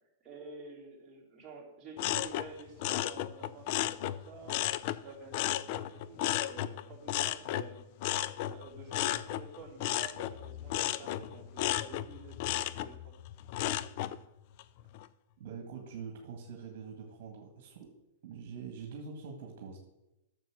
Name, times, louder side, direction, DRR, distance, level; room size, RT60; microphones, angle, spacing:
voice 1, 0.2-4.7 5.0-7.8 8.4-13.2, right 3 dB, 25° right, -4 dB, 3.7 m, -50 dB
sound 1, 2.0-5.0 5.3-14.2 14.6-15.1, left 13 dB, 50° left, 0.4 m, -34 dB
voice 2, 15.4-17.9 18.2-19.8, right 6 dB, 60° right, 2 dB, 1.8 m, -44 dB
9.3 x 7.2 x 6.3 m, 0.97 s
hypercardioid pair, 135°, 0 cm